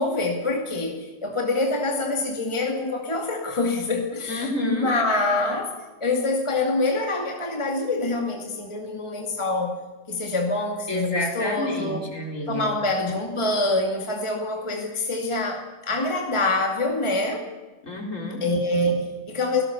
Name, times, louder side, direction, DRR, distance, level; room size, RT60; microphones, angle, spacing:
voice 1, 0.0-5.7 6.0-9.8 10.1-12.0 12.5-17.5 18.4-19.6, left 2 dB, 15° left, 2 dB, 2.2 m, -25 dB
voice 2, 4.3-4.9 10.9-12.6 17.8-18.4, left 1 dB, 45° left, 1 dB, 4.8 m, -29 dB
30.0 x 17.5 x 7.0 m, 1.3 s
omnidirectional pair, 1.8 m